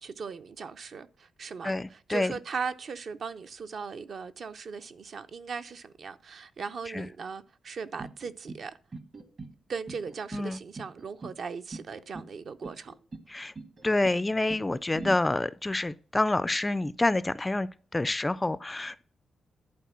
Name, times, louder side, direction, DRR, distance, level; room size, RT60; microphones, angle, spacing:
voice 1, 0.0-8.7 9.7-12.9, right 5 dB, 55° right, 0.6 m, -38 dB
voice 2, 1.6-2.3 6.9-7.1 10.3-10.6 13.3-13.5 13.8-19.0, left 2 dB, 15° left, 0.3 m, -28 dB
sound 1, 8.0-8.6 8.9-9.5 9.9-10.5 10.8-11.4 11.7-12.3 12.6-13.3 13.6-14.2 14.5-15.2, right 3 dB, 40° right, 1.1 m, -42 dB
11.5 x 4.3 x 5.8 m
wide cardioid pair, 140°, 0 cm